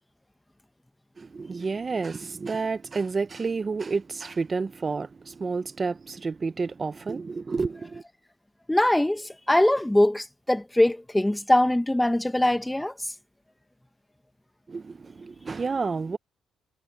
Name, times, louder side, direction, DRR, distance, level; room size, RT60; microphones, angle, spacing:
voice 1, 1.2-8.0 14.7-16.2, right 4 dB, 35° right, 0.7 m, -30 dB
voice 2, 8.7-12.9, left 1 dB, 10° left, 1.0 m, -22 dB
cardioid pair, 90°, 0 cm